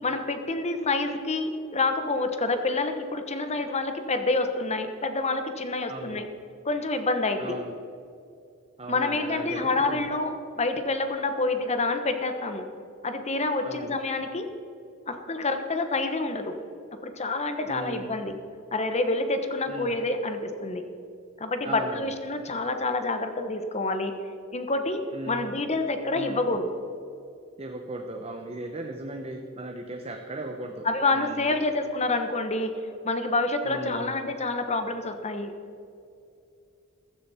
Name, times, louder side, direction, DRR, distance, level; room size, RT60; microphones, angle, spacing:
voice 1, 0.0-6.3 6.6-7.6 8.9-12.6 13.0-14.5 15.1-16.6 17.0-18.3 18.7-20.8 21.4-24.1 24.5-25.0 25.3-26.6 30.8-32.7 33.0-35.5, left 3 dB, 30° left, 7 dB, 1.1 m, -27 dB
voice 2, 5.9-6.3 7.4-7.7 8.8-10.0 13.6-14.0 17.7-18.2 19.7-20.0 21.6-22.1 25.1-25.6 26.1-26.4 27.6-30.9 31.1-31.5 33.6-34.1, right 2 dB, 30° right, 3 dB, 0.9 m, -37 dB
15.0 x 14.0 x 4.3 m, 2.6 s
head